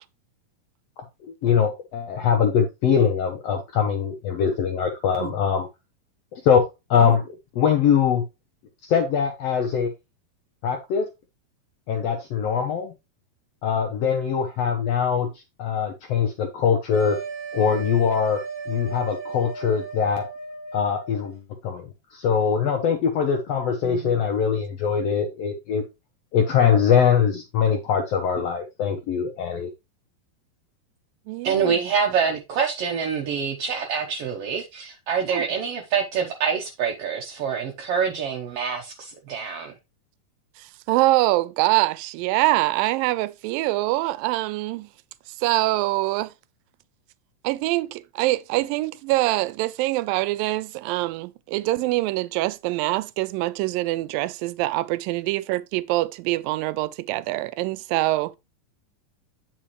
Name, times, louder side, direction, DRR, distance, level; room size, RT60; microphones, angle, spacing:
voice 1, 1.2-5.7 6.3-6.6 6.9-7.2 7.6-8.2 8.8-9.9 10.6-11.0 11.9-12.9 13.6-15.3 15.6-17.2 17.5-18.4 18.7-20.2 20.7-21.8 22.1-25.8 26.3-29.7, left 7 dB, 80° left, 1.4 m, -22 dB
sound 1, 16.9-21.3, right 5 dB, 10° right, 1.2 m, -35 dB
voice 2, 23.8-24.2 31.3-31.8 35.3-35.4 40.6-44.9 45.3-46.3 47.4-58.4, right 18 dB, 85° right, 2.3 m, -24 dB
voice 3, 31.4-39.7, right 6 dB, 70° right, 1.4 m, -26 dB
9.0 x 5.0 x 3.1 m
omnidirectional pair, 4.0 m